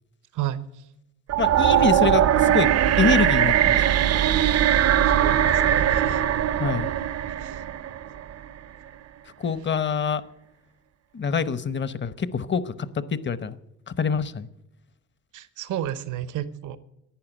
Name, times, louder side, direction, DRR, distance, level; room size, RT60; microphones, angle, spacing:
sound 1, 1.3-8.4, right 10 dB, 55° right, 0.6 m, -20 dB
voice 1, 1.4-2.7 3.0-3.8 6.5-6.9 9.4-10.2 11.1-13.6 13.9-14.5, left 5 dB, 40° left, 16 dB, 0.9 m, -25 dB
voice 2, 5.2-6.2 7.4-7.5 15.3-16.8, right 12 dB, 85° right, 15 dB, 0.9 m, -32 dB
11.5 x 8.7 x 10.0 m, 0.86 s
cardioid pair, 90°, 30 cm